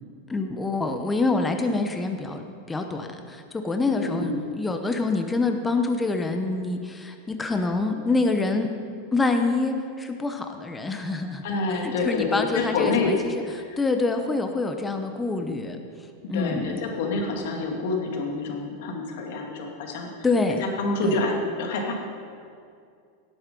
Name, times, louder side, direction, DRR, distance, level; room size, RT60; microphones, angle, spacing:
voice 1, 0.3-8.7 9.1-11.4 11.8-13.4 13.8-15.8 16.3-16.8 20.2-20.6 21.0-21.1, left 3 dB, 10° left, 5 dB, 0.9 m, -26 dB
voice 2, 3.9-4.4 11.4-13.1 13.5-13.8 16.3-20.1 20.6-21.9, left 3 dB, 70° left, 1 dB, 2.4 m, -27 dB
17.0 x 7.9 x 5.4 m, 2.3 s
supercardioid pair, 140°, 0 cm